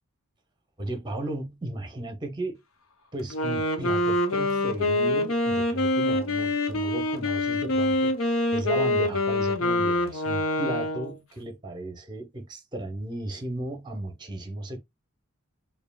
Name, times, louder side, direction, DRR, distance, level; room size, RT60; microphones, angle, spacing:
voice 1, 0.8-2.6 3.1-14.8, right 1 dB, 20° right, 0.8 m, -35 dB
Wind instrument woodwind instrument, 3.2-11.2, left 1 dB, 75° left, 0.8 m, -25 dB
4.8 x 2.7 x 2.3 m
head